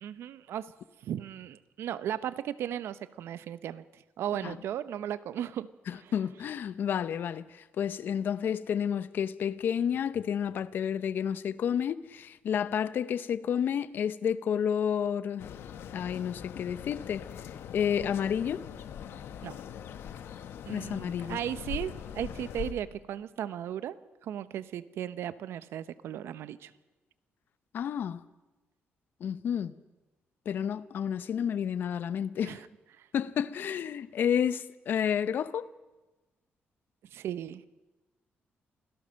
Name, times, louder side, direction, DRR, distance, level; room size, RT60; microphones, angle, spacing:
voice 1, 0.0-0.7 1.0-5.7 6.0-6.1 19.4-19.6 20.6-24.0 24.2-26.7 32.4-32.7 33.0-33.1 37.1-37.7, right 10 dB, 80° right, 0.8 m, -36 dB
voice 2, 5.9-15.5 15.9-17.3 17.7-18.6 20.7-21.4 27.7-28.2 29.2-29.7 30.5-32.6 33.1-35.7, left 8 dB, 55° left, 0.7 m, -30 dB
sound 1, 15.4-22.7, left 9 dB, 75° left, 1.2 m, -42 dB
26.5 x 17.0 x 6.4 m
wide cardioid pair, 175°, 4 cm